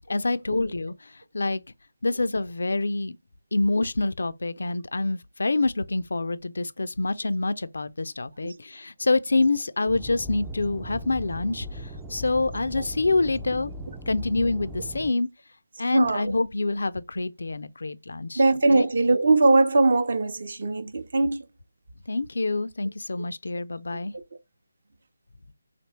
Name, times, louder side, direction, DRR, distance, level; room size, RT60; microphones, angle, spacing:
voice 1, 0.1-1.6 2.0-3.2 3.5-13.7 14.1-15.3 15.8-18.4 18.7-18.9 22.1-24.1, left 2 dB, 60° left, 0.4 m, -26 dB
sound 1, 9.9-15.1, equal, 10° right, 0.4 m, -38 dB
voice 2, 15.9-16.3 18.4-21.4, right 2 dB, 50° right, 0.7 m, -21 dB
4.2 x 3.0 x 3.0 m
figure-of-eight pair, 150°, 0 cm